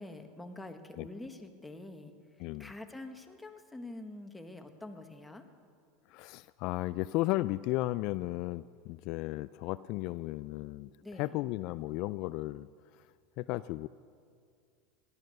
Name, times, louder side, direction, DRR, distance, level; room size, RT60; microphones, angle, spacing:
voice 1, 0.0-2.1 2.6-5.4 11.0-11.4, left 2 dB, 5° left, 5 dB, 1.5 m, -46 dB
voice 2, 2.4-2.7 6.1-10.9 11.2-12.7 13.4-13.9, left 18 dB, 55° left, 16 dB, 0.3 m, -34 dB
18.0 x 11.5 x 6.6 m, 2.2 s
hypercardioid pair, 105°, 0 cm